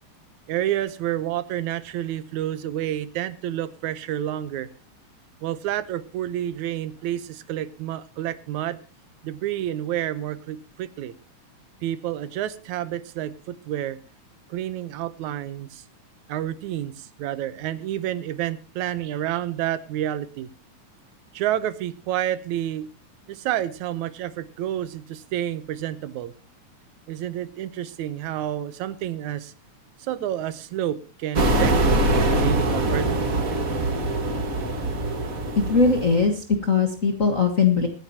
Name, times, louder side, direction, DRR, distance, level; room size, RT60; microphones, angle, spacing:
voice 1, 0.5-4.7 5.4-8.8 9.2-11.1 11.8-14.0 14.5-15.8 16.3-20.5 21.3-22.9 23.3-26.3 27.1-29.5 30.0-33.1, right 12 dB, 80° right, 15 dB, 2.2 m, -29 dB
sound 1, 31.3-36.3, right 2 dB, 35° right, 1.7 m, -23 dB
voice 2, 35.7-37.9, left 4 dB, 40° left, 4 dB, 1.1 m, -20 dB
25.0 x 9.6 x 2.9 m, 0.33 s
omnidirectional pair, 3.4 m